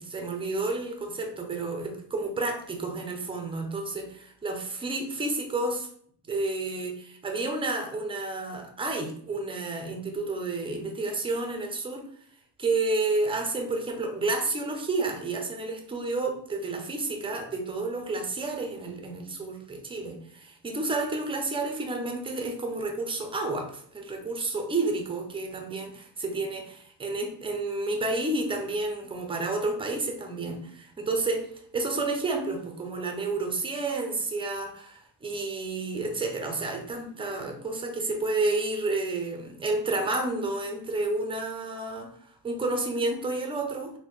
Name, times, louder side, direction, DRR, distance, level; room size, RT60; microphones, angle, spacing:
voice 1, 0.0-5.9 6.3-12.1 12.6-31.5 31.7-43.9, right 2 dB, 10° right, 4 dB, 0.5 m, -30 dB
3.7 x 2.2 x 3.1 m, 0.62 s
cardioid pair, 115°, 44 cm